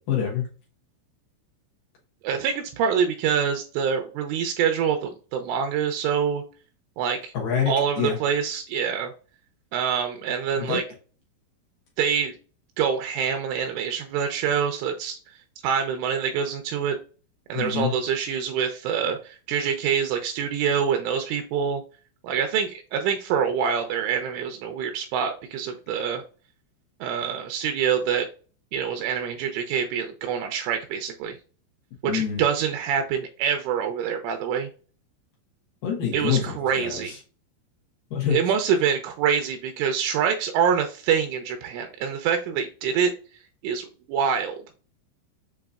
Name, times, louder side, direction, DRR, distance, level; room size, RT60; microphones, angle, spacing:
voice 1, 0.1-0.5 7.3-8.2 10.6-10.8 17.5-17.9 32.0-32.4 35.8-36.4 36.8-37.2 38.1-38.4, left 8 dB, 90° left, -3 dB, 1.9 m, -26 dB
voice 2, 2.2-6.4 7.0-7.3 7.7-9.1 9.7-10.8 12.0-12.4 12.8-15.2 15.6-17.0 17.5-21.8 22.2-26.2 27.0-28.3 28.7-31.4 32.0-34.7 36.1-37.2 38.3-43.1 43.6-44.6, right 7 dB, 80° right, 5 dB, 2.9 m, -25 dB
7.8 x 2.7 x 2.4 m, 0.37 s
omnidirectional pair, 5.9 m